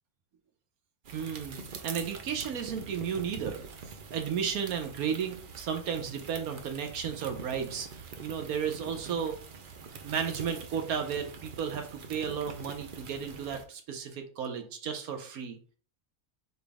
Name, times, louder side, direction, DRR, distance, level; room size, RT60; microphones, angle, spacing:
sound 1, 1.0-13.6, right 5 dB, 60° right, 0.5 m, -44 dB
voice 1, 1.1-3.6 4.1-9.4 10.0-15.6, right 7 dB, 75° right, 6 dB, 1.2 m, -34 dB
4.2 x 3.4 x 3.4 m, 0.41 s
omnidirectional pair, 1.6 m